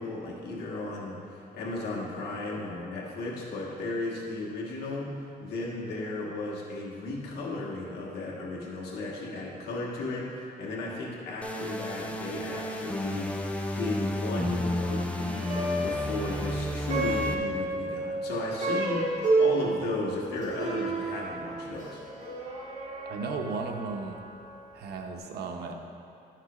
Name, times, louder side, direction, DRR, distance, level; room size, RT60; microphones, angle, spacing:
voice 1, 0.0-13.3 13.7-22.0, left 2 dB, 90° left, -4 dB, 1.5 m, -35 dB
sound 1, 11.4-17.3, left 1 dB, 10° left, 0.5 m, -32 dB
Plucked string instrument, 15.3-24.7, right 2 dB, 50° right, 1.8 m, -31 dB
voice 2, 23.1-24.2 24.7-25.7, right 4 dB, 80° right, 3 dB, 0.7 m, -35 dB
10.0 x 5.9 x 3.0 m, 2.6 s
cardioid pair, 125°, 17 cm